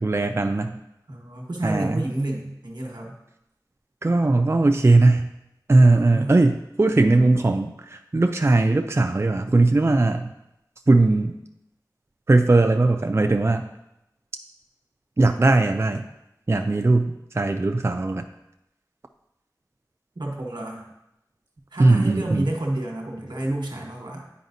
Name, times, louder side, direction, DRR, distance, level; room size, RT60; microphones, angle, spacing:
voice 1, 0.0-0.8 1.6-2.1 4.0-5.3 5.7-10.3 10.9-11.4 12.3-13.7 15.2-16.0 16.5-18.2 21.8-22.5, right 2 dB, 35° right, 6 dB, 0.3 m, -19 dB
voice 2, 1.1-3.1 5.9-6.4 20.1-20.9 21.7-24.3, right 1 dB, 90° right, 0 dB, 1.2 m, -30 dB
9.4 x 4.9 x 2.7 m, 0.87 s
wide cardioid pair, 40°, 7 cm